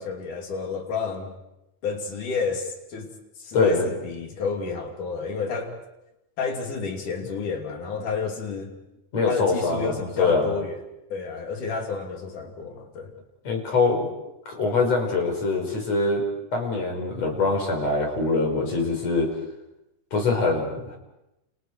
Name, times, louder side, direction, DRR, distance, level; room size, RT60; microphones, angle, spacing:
voice 1, 0.0-1.3 1.8-3.1 3.4-5.8 6.4-8.7 9.3-10.8 11.1-13.1, left 5 dB, 70° left, 2 dB, 4.4 m, -30 dB
voice 2, 3.5-3.9 9.1-10.5 13.4-14.1 14.5-16.2 16.5-19.3 20.1-21.0, left 3 dB, 50° left, 3 dB, 6.1 m, -23 dB
29.5 x 29.5 x 4.7 m, 0.90 s
omnidirectional pair, 3.8 m